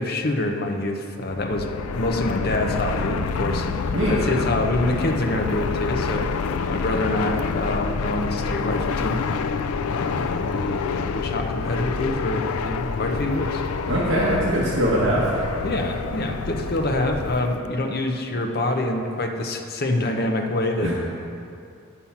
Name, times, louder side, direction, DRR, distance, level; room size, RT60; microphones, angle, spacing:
voice 1, 0.0-1.7 1.9-6.3 6.7-9.2 9.9-13.6 15.6-20.9, left 1 dB, 45° left, 4 dB, 0.7 m, -26 dB
Fixed-wing aircraft airplane, 1.2-17.6, left 5 dB, 85° left, 0.4 m, -27 dB
voice 2, 13.9-15.3 20.8-20.9, right 1 dB, 60° right, -7 dB, 1.4 m, -21 dB
10.0 x 5.7 x 5.8 m, 2.5 s
head